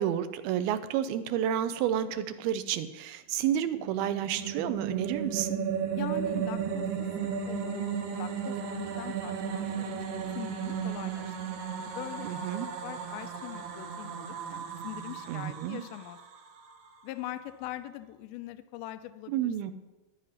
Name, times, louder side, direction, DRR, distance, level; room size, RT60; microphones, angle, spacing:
voice 1, 0.0-5.6 12.2-12.7 15.3-15.8 19.3-19.7, right 10 dB, 80° right, 11 dB, 2.6 m, -30 dB
sound 1, 3.5-16.9, right 7 dB, 65° right, 2.2 m, -35 dB
voice 2, 5.9-11.6 11.9-12.5 12.8-16.2 17.0-19.7, left 13 dB, 80° left, 11 dB, 2.5 m, -42 dB
14.0 x 10.0 x 5.7 m, 1.1 s
omnidirectional pair, 4.6 m